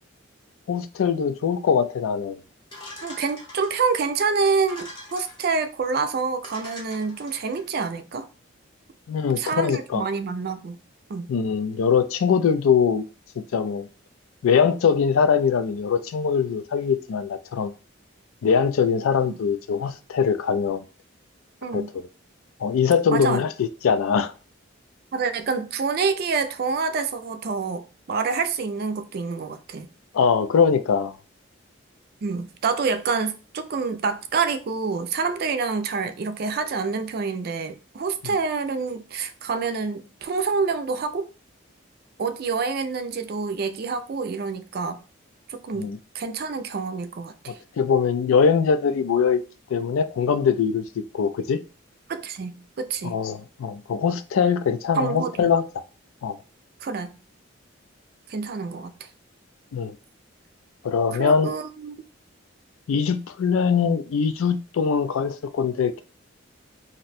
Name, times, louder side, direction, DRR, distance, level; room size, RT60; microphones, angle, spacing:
voice 1, 0.7-2.4 9.1-10.0 11.3-13.0 13.5-13.9 14.4-17.7 18.4-20.8 21.7-22.0 22.6-24.3 30.1-31.2 45.7-46.0 47.5-49.4 49.7-50.8 51.1-51.6 53.0-55.6 56.2-56.4 59.7-59.9 60.8-61.5 62.9-66.0, left 6 dB, 85° left, 0.3 m, -22 dB
sound 1, 2.7-4.0 4.6-5.6 6.1-6.2 6.4-7.6, left 2 dB, 25° left, 0.7 m, -43 dB
voice 2, 3.0-8.3 9.3-10.8 11.1-11.3 19.3-19.4 21.6-21.9 23.1-23.4 25.1-29.9 32.2-41.3 42.2-45.0 45.5-47.6 52.1-53.2 54.9-55.3 56.8-57.2 58.3-59.1 61.1-62.0, right 4 dB, 50° right, 0.3 m, -27 dB
2.6 x 2.1 x 4.0 m
head